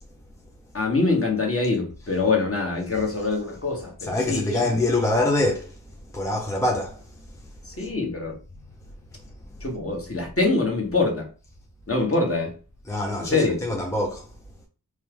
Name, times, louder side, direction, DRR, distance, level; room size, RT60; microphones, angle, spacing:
voice 1, 0.7-4.7 7.7-8.4 9.6-11.3 11.9-12.5 13.2-13.6, left 3 dB, 35° left, 1.3 m, -24 dB
voice 2, 4.0-5.7 6.1-7.0 12.9-14.3, left 2 dB, 10° left, 0.5 m, -24 dB
4.4 x 2.4 x 3.4 m
wide cardioid pair, 70°, 39 cm